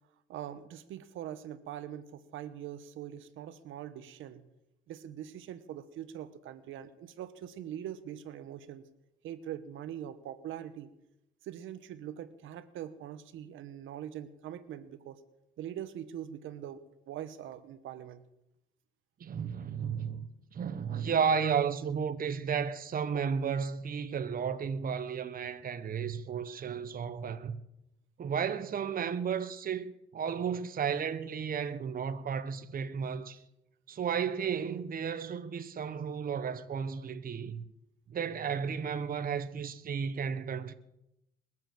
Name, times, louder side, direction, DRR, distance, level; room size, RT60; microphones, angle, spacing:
voice 1, 0.3-4.4 4.9-8.8 9.2-10.9 11.4-15.2 15.6-18.2, right 10 dB, 85° right, 1.1 m, -43 dB
voice 2, 19.2-27.6 28.2-33.4 33.9-37.6 38.1-40.7, right 7 dB, 45° right, 1.0 m, -33 dB
21.0 x 7.8 x 7.6 m
cardioid pair, 90°, 20 cm